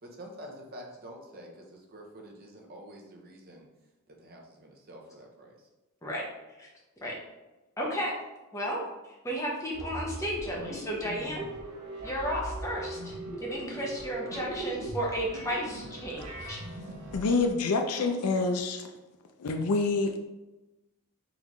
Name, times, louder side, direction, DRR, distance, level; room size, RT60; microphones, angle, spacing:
voice 1, 0.0-3.7 4.1-5.7, equal, 45° right, 0 dB, 0.7 m, -47 dB
voice 2, 7.8-8.1 8.5-8.8 9.0-11.5 12.0-13.1 13.4-16.6, equal, 15° left, -3 dB, 0.9 m, -33 dB
sound 1, 9.7-17.5, right 1 dB, 75° right, 0.8 m, -40 dB
voice 3, 17.1-18.9 19.4-20.3, left 3 dB, 85° left, 4 dB, 0.5 m, -27 dB
3.9 x 3.6 x 3.0 m, 1.1 s
head